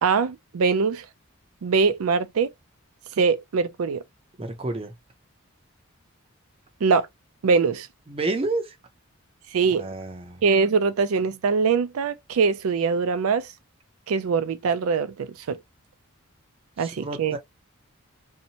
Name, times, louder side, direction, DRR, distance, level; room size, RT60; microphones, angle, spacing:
voice 1, 0.0-1.0 1.6-2.5 3.2-4.0 6.8-7.1 7.4-7.9 9.5-9.9 10.4-13.5 14.1-15.6 16.8-17.4, right 5 dB, 80° right, 0.4 m, -22 dB
voice 2, 4.4-4.9 8.1-8.7 9.8-10.4 16.8-17.4, right 2 dB, 25° right, 0.5 m, -30 dB
2.7 x 2.1 x 2.7 m
head